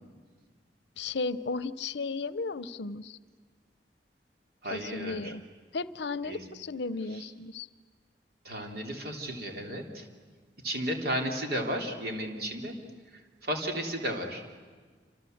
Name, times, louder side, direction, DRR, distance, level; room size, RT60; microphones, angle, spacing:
voice 1, 1.0-3.2 4.7-5.4 5.7-7.7, left 3 dB, 70° left, 16 dB, 0.7 m, -34 dB
voice 2, 4.6-5.3 6.2-6.4 7.1-7.3 8.4-10.1 10.6-12.8 13.1-14.4, equal, 60° right, 2 dB, 3.3 m, -34 dB
27.5 x 27.0 x 7.9 m, 1.5 s
head